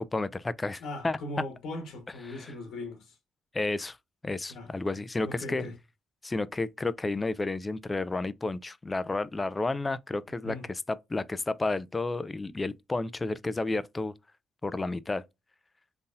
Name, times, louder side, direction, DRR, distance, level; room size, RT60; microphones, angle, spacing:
voice 1, 0.0-1.2 2.3-2.5 3.5-4.0 4.2-5.6 6.2-14.1 14.6-15.2, left 2 dB, 20° left, 0.4 m, -31 dB
voice 2, 0.8-3.2 4.5-4.7 5.2-5.7 10.4-10.7, left 1 dB, 80° left, 1.4 m, -39 dB
3.8 x 2.7 x 2.6 m
cardioid pair, 90°, 0 cm